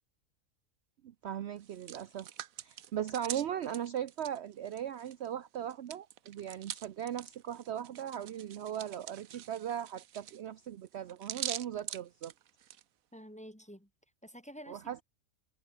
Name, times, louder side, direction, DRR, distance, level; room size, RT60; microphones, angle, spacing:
voice 1, 1.0-2.3 2.6-12.3 14.7-15.0, right 10 dB, 60° right, 0.9 m, -38 dB
Hands, 1.6-5.3 5.6-12.8, right 11 dB, 85° right, 1.3 m, -44 dB
voice 2, 13.1-13.9 14.2-15.0, equal, 5° left, 2.2 m, -49 dB
omnidirectional pair, 1.4 m